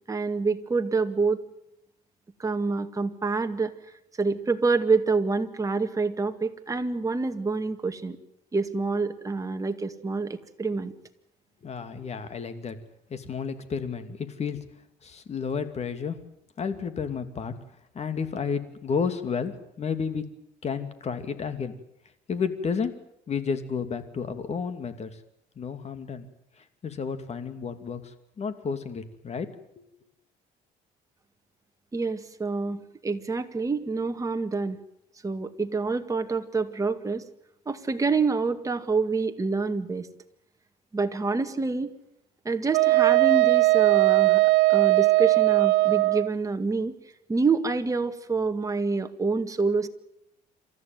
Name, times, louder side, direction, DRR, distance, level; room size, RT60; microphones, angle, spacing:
voice 1, 0.1-1.4 2.4-3.7 4.2-8.2 8.5-10.9 31.9-34.8 35.2-37.2 37.7-40.1 40.9-41.9 42.4-44.4 44.7-47.0 47.3-49.9, right 4 dB, 20° right, 6 dB, 2.1 m, -27 dB
voice 2, 11.6-12.8 13.1-14.7 15.0-16.2 16.6-17.5 17.9-20.2 20.6-21.8 22.3-22.9 23.3-25.1 25.6-26.3 26.8-29.5 29.8-29.9, left 6 dB, 40° left, 10 dB, 2.7 m, -31 dB
Wind instrument woodwind instrument, 42.7-46.3, right 20 dB, 85° right, 0.8 m, -19 dB
27.5 x 14.0 x 9.4 m, 0.80 s
cardioid pair, 110°, 17 cm